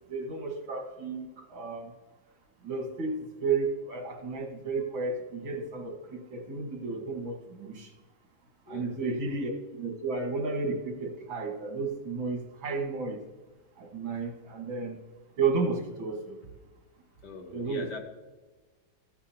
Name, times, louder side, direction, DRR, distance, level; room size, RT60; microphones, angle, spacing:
voice 1, 0.1-1.9 2.6-7.9 8.7-9.5 9.8-13.2 13.8-15.0 15.4-16.4 17.5-17.9, right 4 dB, 85° right, 3 dB, 2.3 m, -32 dB
voice 2, 17.2-18.0, left 3 dB, 60° left, 3 dB, 1.8 m, -42 dB
14.0 x 8.8 x 2.8 m, 1.2 s
omnidirectional pair, 2.1 m